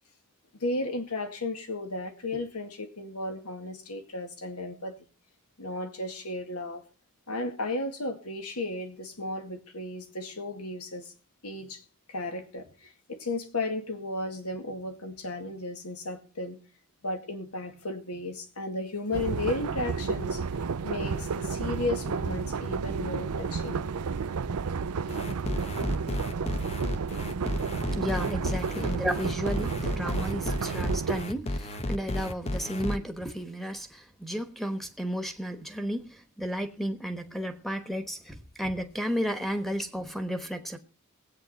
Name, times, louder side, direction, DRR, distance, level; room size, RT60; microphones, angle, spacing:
voice 1, 0.6-5.0 5.6-6.8 7.3-11.1 11.4-11.8 12.1-16.6 17.0-20.4 20.8-23.9 28.1-28.2, left 2 dB, 90° left, 7 dB, 2.1 m, -34 dB
sound 1, 19.1-31.2, right 5 dB, 90° right, 0.5 m, -31 dB
sound 2, 25.1-33.0, left 1 dB, 30° left, 0.8 m, -33 dB
voice 2, 28.0-40.8, equal, ahead, 5 dB, 1.2 m, -33 dB
19.5 x 8.6 x 4.2 m, 0.35 s
head